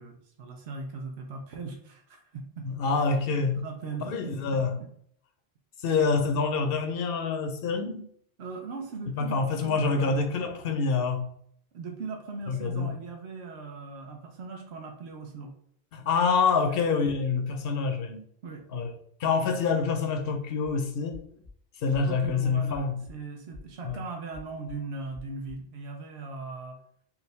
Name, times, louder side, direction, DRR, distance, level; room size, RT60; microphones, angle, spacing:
voice 1, 0.0-2.7 3.3-4.9 8.4-10.3 11.7-15.5 16.7-16.8 18.4-18.7 22.1-26.8, right 4 dB, 90° right, 2 dB, 1.0 m, -39 dB
voice 2, 2.6-3.6 4.0-4.7 5.8-8.0 9.2-11.3 12.5-12.9 15.9-18.2 18.7-18.9 19.2-21.2 21.8-23.0 23.8-24.0, left 4 dB, 65° left, 6 dB, 0.8 m, -26 dB
sound 1, 20.6-20.7 21.1-21.5 21.9-22.3 22.7-23.1 23.5-23.9 24.3-24.7 25.1-25.5, left 3 dB, 70° right, 1.8 m, -48 dB
4.7 x 2.6 x 3.2 m, 0.66 s
omnidirectional pair, 1.0 m